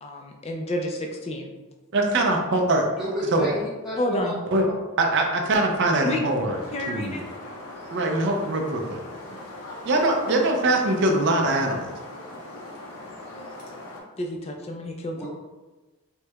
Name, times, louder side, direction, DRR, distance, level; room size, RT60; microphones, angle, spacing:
voice 1, 0.0-1.5 4.0-4.4 6.0-6.2 6.7-7.2 9.3-9.4 10.2-10.4 14.2-15.3, left 1 dB, 25° left, 2 dB, 0.3 m, -30 dB
voice 2, 1.9-2.8 3.3-3.5 4.5-4.7 5.0-6.6 6.9-7.2 7.9-9.0 9.8-11.9, right 2 dB, 55° right, 2 dB, 0.5 m, -22 dB
voice 3, 3.0-4.3 4.7-4.8 15.1-15.3, equal, ahead, -10 dB, 1.1 m, -31 dB
sound 1, 6.5-14.0, left 1 dB, 75° left, 0.6 m, -40 dB
4.4 x 2.1 x 2.3 m, 1.2 s
head